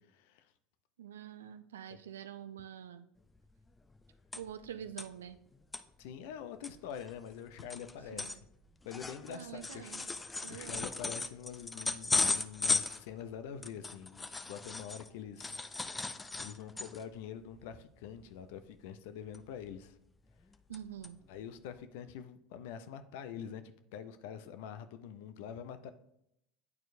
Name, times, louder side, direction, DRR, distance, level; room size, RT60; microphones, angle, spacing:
voice 1, 0.1-0.5 1.9-2.0 6.0-8.4 8.8-9.9 10.5-15.6 16.4-20.0 21.3-25.9, left 8 dB, 70° left, 11 dB, 0.5 m, -45 dB
voice 2, 1.0-3.1 4.4-5.4 8.1-8.4 9.3-10.1 10.4-10.9 20.7-21.2, right 9 dB, 85° right, 12 dB, 0.4 m, -46 dB
sound 1, 3.4-3.5 3.7-4.7 5.0-5.1 5.5-5.8 6.3-6.4 6.6-15.1 15.4-17.1 17.5-17.7 18.0-18.3 19.3-19.9 20.3-20.8 21.0-21.1 21.8-21.9, left 3 dB, 15° left, 0.4 m, -37 dB
9.2 x 4.5 x 2.6 m, 0.78 s
hypercardioid pair, 80°, 0 cm